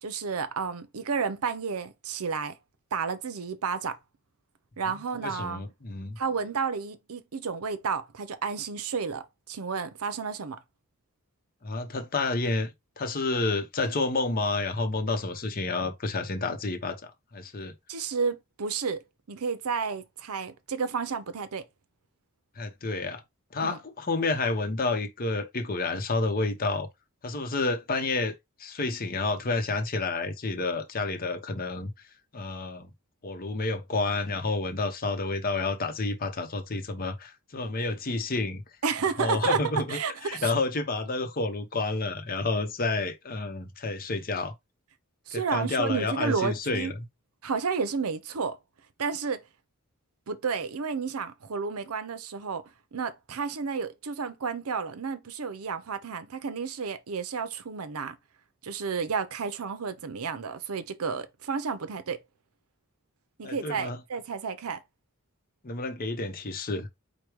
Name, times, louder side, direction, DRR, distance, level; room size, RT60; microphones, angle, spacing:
voice 1, 0.0-2.5 2.9-4.0 4.8-5.6 6.2-10.6 17.9-19.0 19.3-21.6 23.6-23.8 38.8-39.6 39.9-40.5 45.3-46.9 47.4-48.6 49.0-49.4 50.3-52.6 52.9-58.2 58.6-62.2 63.4-64.8, right 5 dB, 75° right, 0.6 m, -31 dB
voice 2, 5.2-6.2 11.6-17.7 22.6-23.2 23.5-26.9 27.2-28.3 28.6-31.9 32.3-32.9 33.2-38.6 39.2-44.5 45.3-46.9 63.4-64.0 65.6-66.9, left 3 dB, 40° left, 0.8 m, -30 dB
4.9 x 2.2 x 4.5 m
head